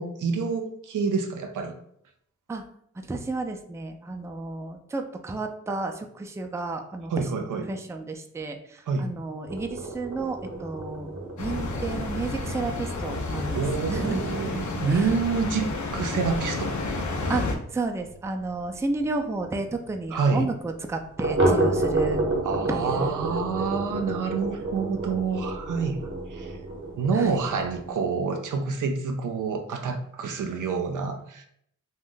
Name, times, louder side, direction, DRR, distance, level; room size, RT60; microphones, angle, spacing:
voice 1, 0.0-1.7 7.1-7.7 8.9-9.1 13.5-15.7 15.9-16.7 20.1-20.5 22.4-26.0 26.3-26.5 27.0-31.5, right 5 dB, 75° right, 5 dB, 0.5 m, -27 dB
voice 2, 3.0-11.1 11.4-13.6 13.9-14.6 14.9-15.1 17.3-17.4 17.7-22.2 22.7-23.4 27.1-27.4, right 3 dB, 10° right, 4 dB, 0.4 m, -32 dB
sound 1, 9.4-18.7 19.0-19.1 19.4-19.5 19.9-20.0 21.2-27.9, right 2 dB, 40° right, 0.8 m, -30 dB
sound 2, 11.4-17.5, left 2 dB, 70° left, 0.6 m, -30 dB
2.5 x 2.1 x 3.7 m, 0.68 s
cardioid pair, 45°, 31 cm